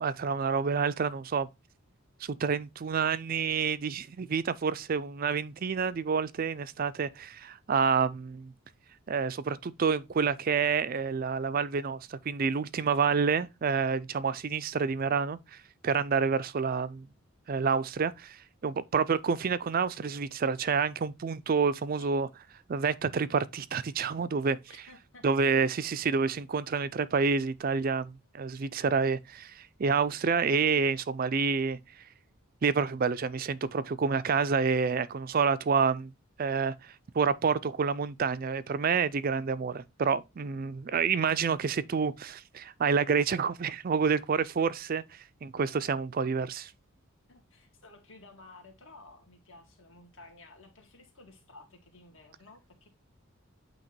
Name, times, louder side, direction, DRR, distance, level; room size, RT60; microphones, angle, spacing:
voice 1, 0.0-1.5 2.2-8.5 9.1-15.6 15.8-17.1 17.5-22.3 22.7-24.6 25.2-31.8 32.6-36.1 36.4-45.0 45.4-46.7, right 5 dB, 40° right, 0.4 m, -28 dB
voice 2, 24.7-25.3 47.3-52.9, left 2 dB, 60° left, 2.0 m, -54 dB
8.7 x 2.9 x 4.3 m
head